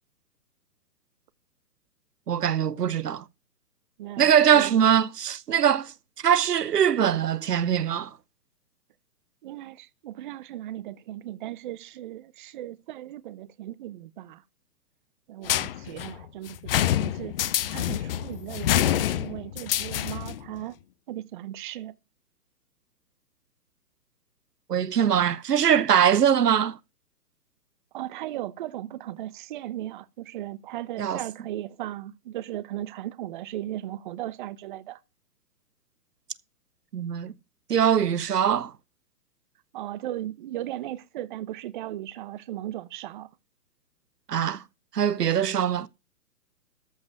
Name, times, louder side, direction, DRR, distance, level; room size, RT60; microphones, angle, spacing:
voice 1, 2.3-3.2 4.2-8.1 24.7-26.8 31.0-31.2 36.9-37.3 37.7-38.7 44.3-44.6 44.9-45.9, right 9 dB, 85° right, 0.9 m, -22 dB
voice 2, 4.0-4.9 9.4-14.4 15.3-17.4 17.7-20.8 21.1-21.9 27.9-35.0 39.7-43.3, right 13 dB, 35° right, 0.7 m, -37 dB
sound 1, 15.4-20.4, left 12 dB, 40° left, 0.8 m, -27 dB
13.5 x 5.2 x 5.9 m
hypercardioid pair, 135°, 46 cm